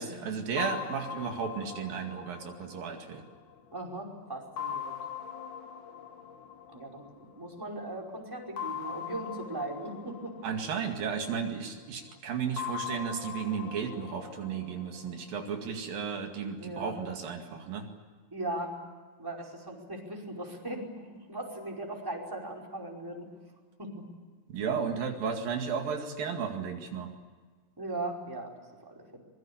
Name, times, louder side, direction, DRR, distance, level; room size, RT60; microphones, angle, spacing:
voice 1, 0.0-3.2 10.4-17.9 24.5-27.1, right 6 dB, 75° right, 3 dB, 4.0 m, -34 dB
sound 1, 0.6-3.9 4.6-7.5 8.6-11.7 12.6-15.7, left 8 dB, 65° left, 3.6 m, -41 dB
voice 2, 3.7-5.0 6.7-10.4 16.6-16.9 18.3-18.7 19.2-20.9 21.3-23.3 23.8-23.9 27.8-28.5 28.8-29.2, right 2 dB, 5° right, -1 dB, 4.9 m, -38 dB
25.0 x 23.0 x 8.6 m, 1.5 s
omnidirectional pair, 4.1 m